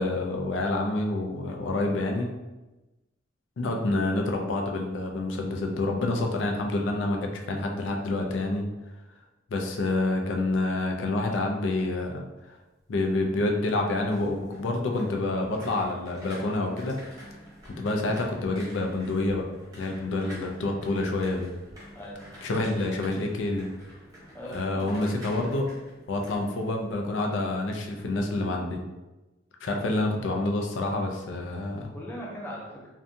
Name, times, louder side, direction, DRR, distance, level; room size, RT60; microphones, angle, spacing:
voice 1, 0.0-2.3 3.6-8.7 9.5-12.6 12.9-17.0 17.7-19.5 19.8-21.5 22.4-23.7 24.5-25.7 26.1-28.8 29.6-31.9, left 2 dB, 70° left, 2 dB, 0.4 m, -28 dB
sound 1, 13.3-27.3 27.7-28.0, equal, 20° right, 0.8 m, -49 dB
voice 2, 21.9-22.3 24.3-25.2 31.9-32.9, equal, 10° left, -4 dB, 0.5 m, -39 dB
2.6 x 2.2 x 2.6 m, 1.1 s
head